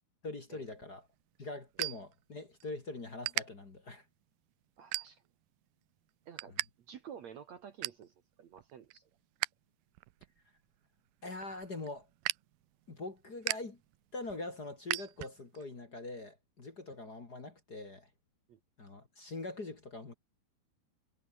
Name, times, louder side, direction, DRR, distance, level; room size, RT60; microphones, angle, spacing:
voice 1, 0.2-1.1 1.4-4.0 11.2-12.1 12.9-13.8 14.1-18.1 18.8-20.1, left 2 dB, 30° left, 2.6 m, -43 dB
sound 1, 0.6-2.7 3.0-3.4 4.0-4.2 4.8-5.5 5.9-6.7 7.0-7.1 7.4-8.1 8.5-9.5 9.9-15.6, right 20 dB, 85° right, 2.3 m, -39 dB
voice 2, 4.8-5.2 6.3-6.6 6.9-9.1 18.5-18.6, right 8 dB, 55° right, 2.3 m, -51 dB
omnidirectional pair, 4.2 m